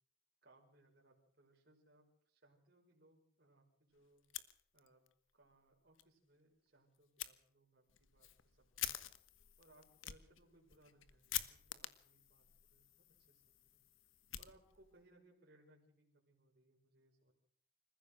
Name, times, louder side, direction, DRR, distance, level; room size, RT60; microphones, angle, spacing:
voice 1, 0.4-4.2 4.7-9.0 9.6-12.5 12.7-13.8 14.4-17.3, right 1 dB, 50° right, -1 dB, 5.3 m, -69 dB
Fire, 4.2-5.1 5.4-5.5 6.0-6.1 7.2-7.3 7.9-15.0, left 12 dB, 85° left, 1.3 m, -48 dB
27.0 x 15.0 x 6.6 m, 0.63 s
head